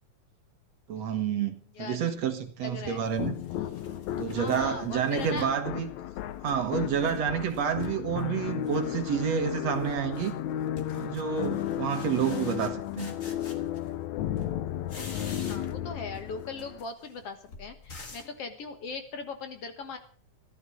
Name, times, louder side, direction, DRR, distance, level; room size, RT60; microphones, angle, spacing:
voice 1, 0.9-3.3 4.2-5.9 6.4-10.4 10.9-13.1, right 8 dB, 60° right, 2.3 m, -29 dB
sound 1, 2.2-2.3 2.8-5.6 6.1-7.2 7.5-8.3 8.6-9.1 9.4-14.1 14.4-15.9 16.1-18.4, left 3 dB, 30° left, 1.9 m, -48 dB
voice 2, 2.6-3.0 4.3-5.6 15.4-20.0, left 4 dB, 55° left, 2.1 m, -39 dB
sound 2, 3.2-16.8, left 11 dB, 70° left, 2.1 m, -34 dB
14.5 x 12.5 x 6.3 m
omnidirectional pair, 3.6 m